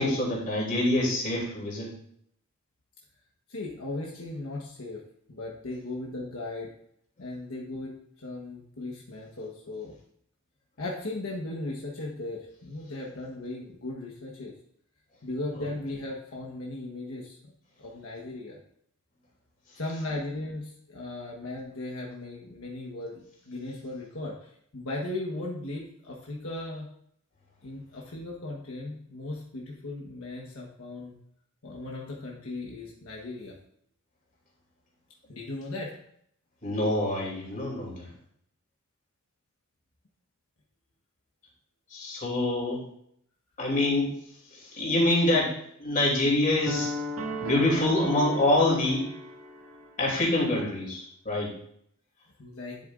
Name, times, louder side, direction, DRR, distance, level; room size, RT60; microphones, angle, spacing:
voice 1, 0.0-1.9 36.6-38.1 41.9-42.8 43.6-44.1 44.5-46.9 47.4-49.1 50.0-51.5, left 1 dB, 40° left, -2 dB, 2.8 m, -26 dB
voice 2, 3.5-5.0 5.3-6.7 7.2-9.9 10.8-14.5 15.2-17.5 17.8-18.6 19.7-26.9 27.6-31.2 31.6-33.5 35.3-35.9 52.4-52.8, left 2 dB, 75° left, -2 dB, 1.2 m, -37 dB
sound 1, 46.7-49.9, left 1 dB, 75° right, 1.7 m, -35 dB
10.5 x 7.7 x 2.5 m, 0.68 s
head